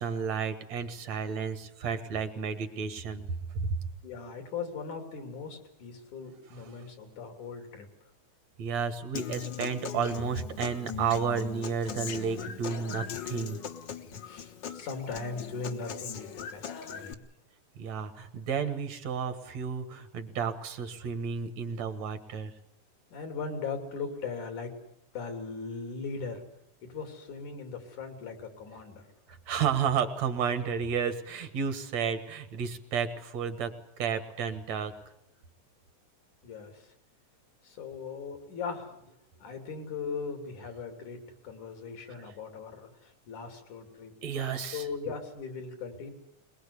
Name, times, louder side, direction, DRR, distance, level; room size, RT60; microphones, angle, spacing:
voice 1, 0.0-3.2 3.6-3.7 6.6-6.7 8.6-13.6 17.8-22.5 29.3-34.9 42.1-42.3 44.2-44.9, right 6 dB, 65° right, 10 dB, 2.7 m, -32 dB
voice 2, 4.0-7.9 14.2-17.2 23.1-24.7 25.1-26.4 26.8-29.0 36.4-36.9 37.6-39.1 39.4-41.2 41.4-44.1 44.7-46.1, left 5 dB, 85° left, 6 dB, 4.6 m, -39 dB
Human voice / Acoustic guitar, 9.1-17.1, left 8 dB, 55° left, 1.3 m, -40 dB
22.5 x 21.5 x 8.4 m, 0.76 s
omnidirectional pair, 3.4 m